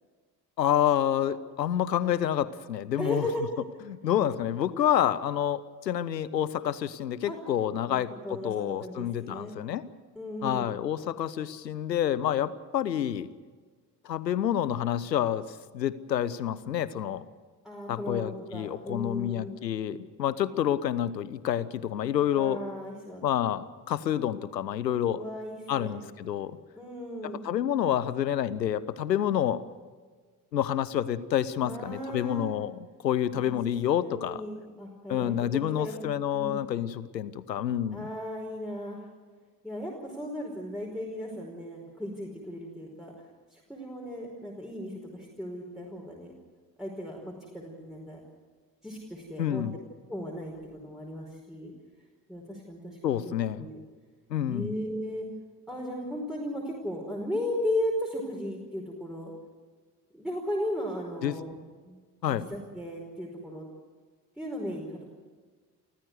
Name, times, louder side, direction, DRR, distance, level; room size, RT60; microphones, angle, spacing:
voice 1, 0.6-3.2 3.9-9.8 10.4-13.3 14.0-15.4 15.7-17.2 17.9-22.6 23.2-25.2 25.7-26.6 27.4-29.6 30.5-34.4 35.1-38.1 49.4-49.8 53.0-53.7 54.3-54.7 61.2-61.4 62.2-62.5, left 10 dB, 85° left, 17 dB, 0.8 m, -28 dB
voice 2, 3.0-3.4 7.2-7.4 7.8-9.6 10.1-10.8 17.6-19.6 22.3-23.2 25.2-26.0 26.8-27.4 31.6-32.5 33.3-33.5 34.0-36.1 36.3-36.7 37.9-39.1 39.6-43.1 43.5-46.3 46.8-48.2 48.8-49.6 50.1-51.7 52.3-53.8 54.5-55.3 55.7-59.3 60.1-61.6 61.8-62.0 62.3-63.6 64.4-65.1, left 1 dB, ahead, -3 dB, 4.9 m, -36 dB
29.0 x 14.5 x 8.1 m, 1.5 s
figure-of-eight pair, 50°, 49 cm